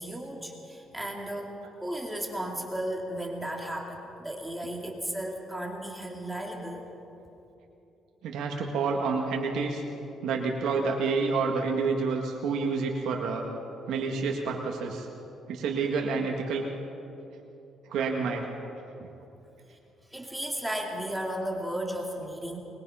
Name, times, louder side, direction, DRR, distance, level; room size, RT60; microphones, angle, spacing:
voice 1, 0.0-6.8 19.7-19.8 20.1-22.6, right 1 dB, 5° right, 0 dB, 2.3 m, -35 dB
voice 2, 8.2-9.8 10.2-13.5 13.9-15.1 15.5-16.7 17.9-18.5, right 4 dB, 80° right, 0 dB, 1.9 m, -28 dB
22.5 x 21.5 x 5.8 m, 2.9 s
cardioid pair, 135°, 0 cm